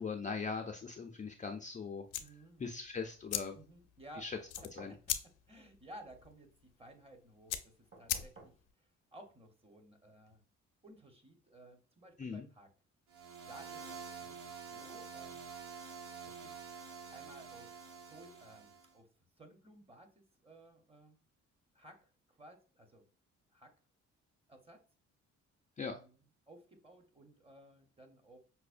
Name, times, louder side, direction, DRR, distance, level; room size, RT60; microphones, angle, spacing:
voice 1, 0.0-2.0 2.6-3.6 4.2-4.4 4.7-4.9 12.2-12.5 25.8-26.0, left 5 dB, 25° left, 3 dB, 0.4 m, -40 dB
sound 1, 2.0-8.7, left 11 dB, 85° left, 0.5 m, -42 dB
voice 2, 2.2-2.6 3.5-4.2 4.9-6.5 6.8-8.5 8.8-10.4 10.8-12.7 13.5-15.5 16.3-16.5 17.1-17.7 18.0-19.1 19.4-21.2 21.7-23.0 23.5-23.7 24.5-24.8 25.8-26.2 26.5-28.4, right 1 dB, 20° right, 4 dB, 0.9 m, -57 dB
sound 2, 4.3-5.1 7.9-8.6 10.2-10.3, right 2 dB, 35° right, 1.6 m, -56 dB
sound 3, 13.1-18.9, right 6 dB, 75° right, 0.8 m, -48 dB
5.5 x 2.1 x 2.5 m, 0.36 s
cardioid pair, 90°, 30 cm